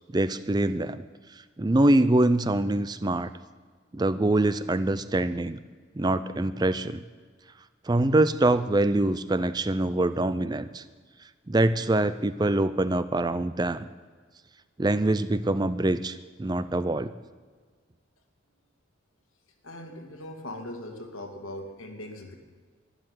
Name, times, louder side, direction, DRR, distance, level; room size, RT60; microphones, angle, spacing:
voice 1, 0.1-1.1 1.6-3.3 3.9-5.6 6.0-7.0 7.9-10.8 11.5-13.8 14.8-17.1, right 2 dB, 20° right, 13 dB, 0.4 m, -24 dB
voice 2, 19.6-22.4, left 1 dB, 85° left, 4 dB, 2.4 m, -40 dB
12.0 x 11.5 x 9.8 m, 1.5 s
head